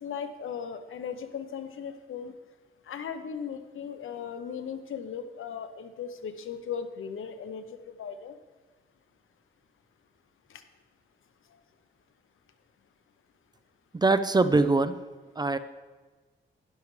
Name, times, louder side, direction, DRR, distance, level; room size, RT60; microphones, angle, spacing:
voice 1, 0.0-2.3 2.9-8.3 10.5-10.6, left 7 dB, 85° left, 9 dB, 0.8 m, -37 dB
voice 2, 13.9-15.0 15.4-15.6, right 3 dB, 20° right, 12 dB, 0.4 m, -23 dB
12.0 x 11.0 x 3.2 m, 1.3 s
wide cardioid pair, 115°, 20 cm